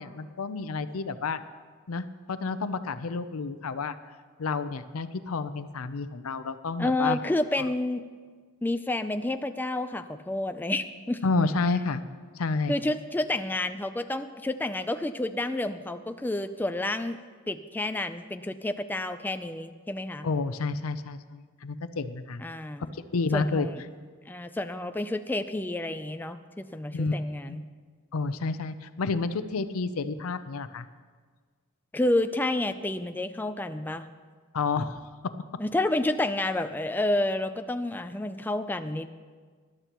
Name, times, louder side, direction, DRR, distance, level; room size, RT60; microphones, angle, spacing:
voice 1, 0.0-1.4 1.9-4.0 4.4-7.2 11.2-12.0 12.4-12.8 20.2-22.4 23.1-23.7 26.9-27.6 28.1-30.9 34.5-35.0, left 4 dB, 90° left, 12 dB, 0.6 m, -30 dB
voice 2, 6.8-8.0 8.6-11.2 12.7-17.2 17.5-20.3 22.4-22.9 23.3-23.8 24.3-27.7 31.9-34.1 35.6-39.1, left 1 dB, 10° left, 9 dB, 0.4 m, -29 dB
19.0 x 12.0 x 3.0 m, 1.5 s
head